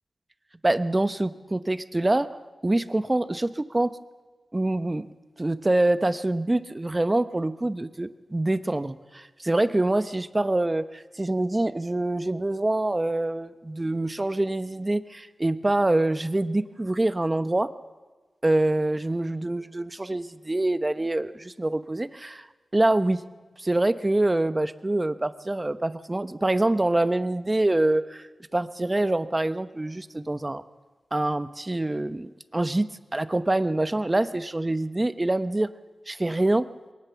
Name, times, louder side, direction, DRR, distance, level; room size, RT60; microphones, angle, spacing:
voice 1, 0.6-2.3 2.6-4.0 4.5-5.1 5.4-17.7 18.4-22.5 22.7-23.2 23.6-30.6 31.1-35.7 36.1-36.7, right 2 dB, 25° right, 12 dB, 0.9 m, -25 dB
22.0 x 18.5 x 7.0 m, 1.3 s
cardioid pair, 55°, 0 cm